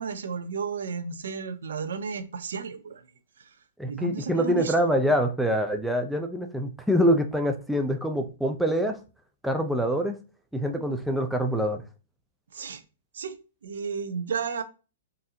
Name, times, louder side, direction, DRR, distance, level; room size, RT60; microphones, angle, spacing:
voice 1, 0.0-3.0 3.4-3.5 3.9-4.9 12.5-12.8 13.1-13.4 13.6-14.6, right 5 dB, 80° right, 0.5 m, -33 dB
voice 2, 3.8-9.0 9.4-10.2 10.5-11.8, equal, ahead, 0.4 m, -25 dB
3.9 x 2.6 x 2.7 m
hypercardioid pair, 135°, 0 cm